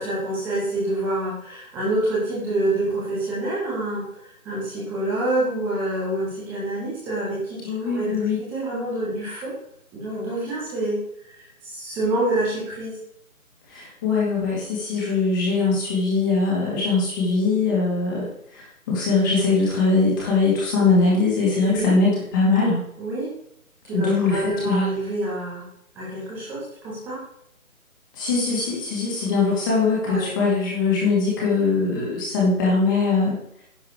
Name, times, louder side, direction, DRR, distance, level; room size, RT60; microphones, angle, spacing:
voice 1, 0.0-8.1 8.4-9.5 9.9-11.0 11.2-13.0 21.6-22.0 23.0-23.3 23.8-25.6 26.0-27.2 30.0-30.3, right 2 dB, 5° right, -7 dB, 1.6 m, -27 dB
voice 2, 7.6-8.4 13.7-22.8 23.9-24.9 28.1-33.4, left 3 dB, 15° left, -5 dB, 2.3 m, -21 dB
10.5 x 7.3 x 4.8 m, 0.70 s
figure-of-eight pair, 155°, 43 cm